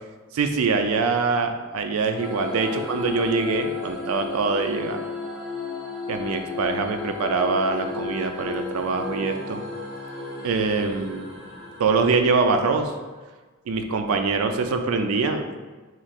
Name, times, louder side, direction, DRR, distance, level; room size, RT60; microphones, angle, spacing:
voice 1, 0.3-5.0 6.1-9.6 10.4-11.2 11.8-12.9 13.7-15.6, right 4 dB, 80° right, 6 dB, 0.4 m, -24 dB
sound 1, 2.2-13.1, left 4 dB, 15° right, 1.3 m, -34 dB
3.1 x 2.3 x 4.2 m, 1.3 s
head